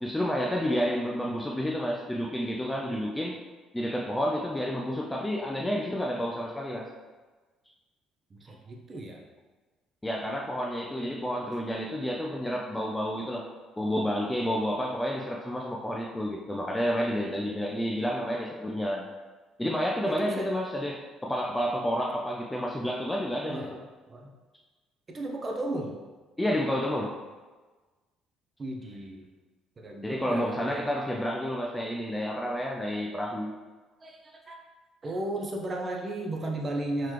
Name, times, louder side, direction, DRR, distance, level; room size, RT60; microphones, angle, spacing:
voice 1, 0.0-3.4 3.7-6.9 10.0-13.5 13.8-19.0 19.6-23.8 26.4-27.2 30.0-33.6, equal, 10° left, -2 dB, 0.4 m, -30 dB
voice 2, 8.3-9.2 20.1-20.5 23.5-24.4 25.1-26.0 28.6-29.3 29.8-30.9 34.0-34.6 35.0-37.1, right 1 dB, 30° right, 1 dB, 0.6 m, -35 dB
3.9 x 2.9 x 3.2 m, 1.3 s
cardioid pair, 105°, 0 cm